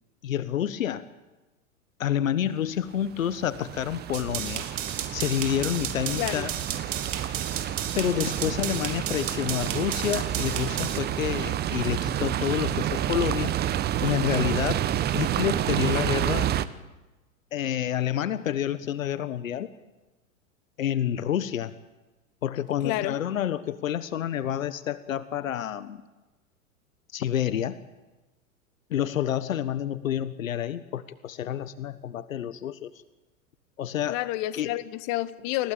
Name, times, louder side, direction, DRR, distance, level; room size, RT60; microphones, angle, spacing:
voice 1, 0.2-1.0 2.0-4.7 5.1-6.6 7.9-13.5 14.0-16.5 17.5-19.7 20.8-21.7 22.4-26.0 27.1-27.8 28.9-32.9 33.8-34.2 34.5-34.7, left 10 dB, 65° left, 14 dB, 1.4 m, -28 dB
sound 1, 3.0-16.7, right 11 dB, 25° right, 1.0 m, -29 dB
sound 2, 4.1-11.0, right 10 dB, 60° right, 3.5 m, -33 dB
voice 2, 22.8-23.1 34.1-35.7, left 16 dB, 40° left, 13 dB, 1.5 m, -29 dB
29.0 x 16.0 x 8.9 m, 1.1 s
figure-of-eight pair, 100°, 42 cm